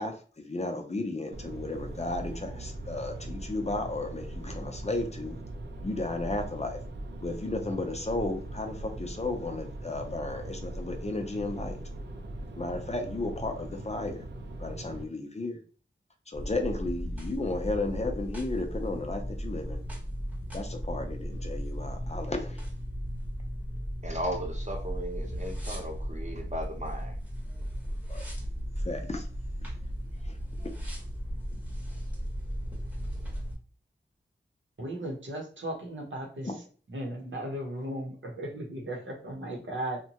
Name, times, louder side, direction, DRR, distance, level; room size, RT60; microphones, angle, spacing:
voice 1, 0.0-5.4 5.8-6.8 7.2-11.8 12.6-14.2 14.6-15.6 16.3-19.8 20.5-22.6 28.1-28.2 28.8-29.3 30.2-30.7 36.4-36.6, left 2 dB, 35° left, 4 dB, 0.5 m, -34 dB
sound 1, 1.3-15.0, right 1 dB, 65° right, 0.5 m, -40 dB
sound 2, 16.3-33.5, equal, 5° right, 0.9 m, -36 dB
voice 2, 24.0-27.2, equal, 35° right, 1 dB, 0.8 m, -36 dB
voice 3, 34.8-36.5 36.9-40.0, right 1 dB, 85° right, -1 dB, 0.8 m, -36 dB
2.8 x 2.2 x 2.8 m, 0.40 s
wide cardioid pair, 70°, 19 cm